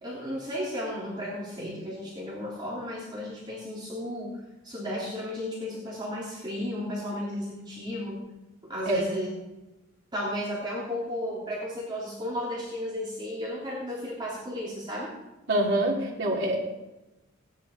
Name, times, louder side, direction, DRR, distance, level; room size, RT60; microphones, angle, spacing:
voice 1, 0.0-8.3 8.6-9.3 10.1-15.1, equal, 20° right, -6 dB, 3.2 m, -34 dB
voice 2, 15.5-16.6, right 1 dB, 60° right, -3 dB, 3.5 m, -25 dB
18.0 x 10.5 x 4.5 m, 1.0 s
head